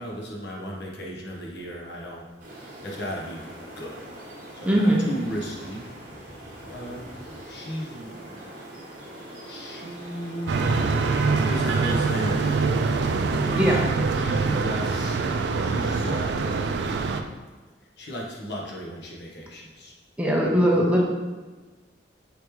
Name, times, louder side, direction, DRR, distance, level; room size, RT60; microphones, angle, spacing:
voice 1, 0.0-2.3 2.8-3.5 3.7-4.0 4.5-5.8 6.7-7.1 7.4-8.5 9.2-11.0 11.4-12.6 13.4-15.2 15.6-16.4 18.0-19.9 20.7-20.8, equal, 70° left, -2 dB, 0.9 m, -36 dB
sound 1, 2.4-13.9, right 1 dB, 50° right, 1.0 m, -42 dB
voice 2, 4.6-5.1 13.6-13.9 20.2-21.0, equal, 5° right, -3 dB, 0.5 m, -20 dB
sound 2, 10.5-17.2, right 4 dB, 70° right, 0.3 m, -24 dB
5.0 x 3.4 x 3.1 m, 1.3 s
head